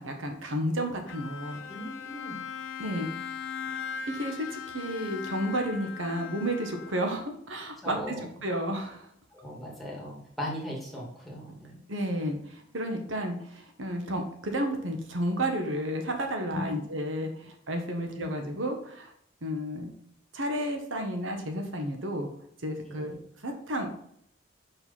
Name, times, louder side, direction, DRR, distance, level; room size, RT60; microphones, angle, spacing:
voice 1, 0.0-1.6 2.8-3.1 4.1-9.1 11.9-19.1 19.4-19.9 20.3-22.3 22.6-23.2 23.4-23.9, equal, 80° right, 4 dB, 1.4 m, -32 dB
Bowed string instrument, 1.1-7.5, left 7 dB, 85° left, 0.8 m, -39 dB
voice 2, 1.7-2.4 7.8-8.2 9.3-11.7 16.5-16.8 17.9-18.3 22.9-23.2, left 1 dB, ahead, -4 dB, 2.5 m, -38 dB
6.5 x 5.6 x 5.7 m, 0.68 s
head